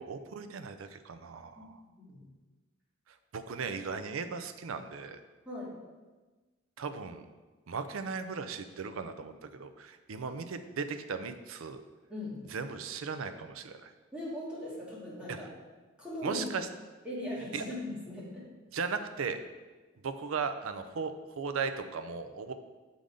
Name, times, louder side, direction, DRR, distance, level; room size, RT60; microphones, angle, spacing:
voice 1, 0.0-1.8 3.3-5.2 6.8-7.2 7.7-11.8 12.5-13.9 15.3-15.4 16.2-16.7 17.5-17.6 18.7-19.4 20.0-22.5, right 5 dB, 80° right, 9 dB, 0.5 m, -37 dB
voice 2, 12.1-12.4 14.1-15.5 16.0-16.4 17.0-18.4, left 1 dB, 5° right, -8 dB, 1.9 m, -39 dB
6.8 x 3.8 x 5.0 m, 1.3 s
head